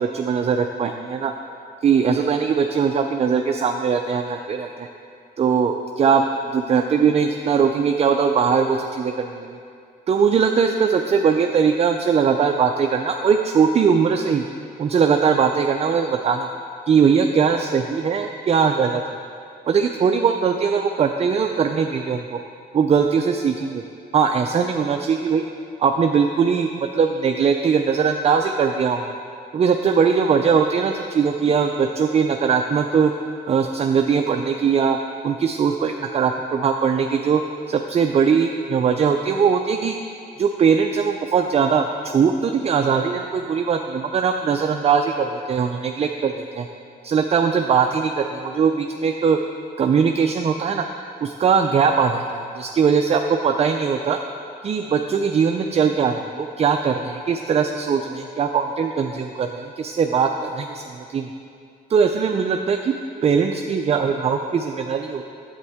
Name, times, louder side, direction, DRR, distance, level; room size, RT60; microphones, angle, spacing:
voice 1, 0.0-1.3 1.8-4.9 5.4-6.2 6.5-9.6 10.1-14.4 14.8-16.5 16.9-19.0 19.7-22.4 22.7-23.8 24.1-25.5 25.8-29.1 29.5-33.1 33.5-35.0 35.2-37.4 37.7-40.0 40.4-46.7 47.0-49.4 49.8-50.9 51.2-54.2 54.6-61.3 61.9-62.9 63.2-65.2, right 6 dB, 35° right, 4 dB, 0.4 m, -20 dB
9.6 x 8.1 x 3.5 m, 2.4 s
cardioid pair, 95°, 18 cm